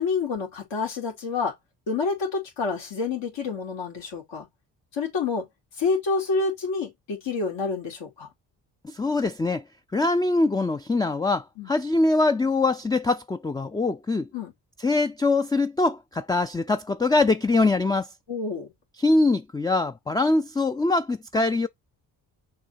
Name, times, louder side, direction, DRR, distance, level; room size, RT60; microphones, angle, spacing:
voice 1, 0.0-1.5 1.9-4.5 4.9-5.5 5.8-8.3 11.6-11.7 14.3-14.5 18.3-18.7, left 4 dB, 70° left, 2.6 m, -28 dB
voice 2, 8.8-9.6 9.9-14.3 14.8-18.1 19.0-21.7, left 3 dB, 10° left, 0.4 m, -23 dB
6.5 x 2.8 x 5.6 m
hypercardioid pair, 45°, 46 cm